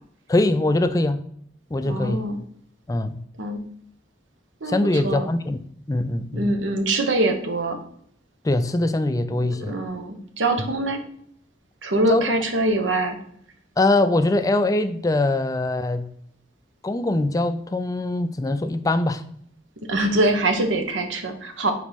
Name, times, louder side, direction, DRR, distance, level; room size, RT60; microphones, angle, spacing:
voice 1, 0.3-1.2 1.7-2.2 2.9-3.2 4.7-5.6 5.9-6.5 8.4-9.7 12.1-12.3 13.8-16.1 16.8-19.2, left 2 dB, 20° left, 10 dB, 0.3 m, -22 dB
voice 2, 1.8-2.4 3.4-3.6 4.6-5.3 6.3-7.8 9.4-11.0 11.8-13.2 19.9-21.7, right 2 dB, 85° right, 5 dB, 1.0 m, -24 dB
5.1 x 4.2 x 5.1 m, 0.65 s
head